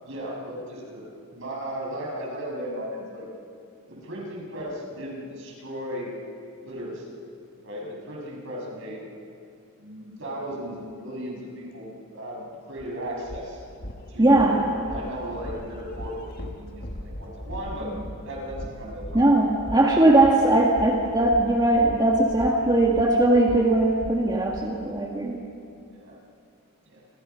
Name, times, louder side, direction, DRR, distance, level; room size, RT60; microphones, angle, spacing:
voice 1, 0.0-1.1 1.3-3.3 3.9-6.1 6.6-7.2 7.6-9.0 9.8-13.6 14.1-17.9 18.2-19.3 25.9-26.2 26.9-27.0, equal, 60° right, -2 dB, 7.0 m, -36 dB
sound 1, 12.8-12.9 13.2-24.6, equal, 45° left, 2.1 m, -39 dB
voice 2, 14.2-14.6 19.1-25.4, right 2 dB, 20° right, -2 dB, 2.0 m, -20 dB
28.5 x 28.0 x 5.9 m, 2.5 s
head